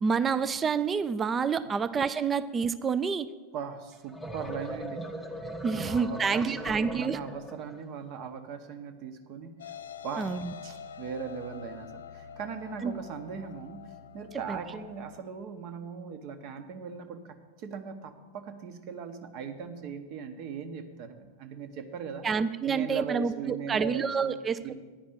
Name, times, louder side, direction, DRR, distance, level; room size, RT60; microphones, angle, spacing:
voice 1, 0.0-3.3 5.6-7.2 10.2-10.5 12.8-12.9 14.5-14.6 22.2-24.7, right 5 dB, 20° right, 14 dB, 0.3 m, -28 dB
voice 2, 3.5-5.0 5.7-9.5 10.0-10.3 10.6-22.2 22.6-24.4 24.6-24.7, right 6 dB, 40° right, 8 dB, 0.9 m, -39 dB
sound 1, 3.9-7.8, right 1 dB, ahead, 0.7 m, -39 dB
sound 2, 9.6-15.2, left 8 dB, 70° left, 0.4 m, -46 dB
10.0 x 5.2 x 8.3 m, 1.4 s
figure-of-eight pair, 90°, 0 cm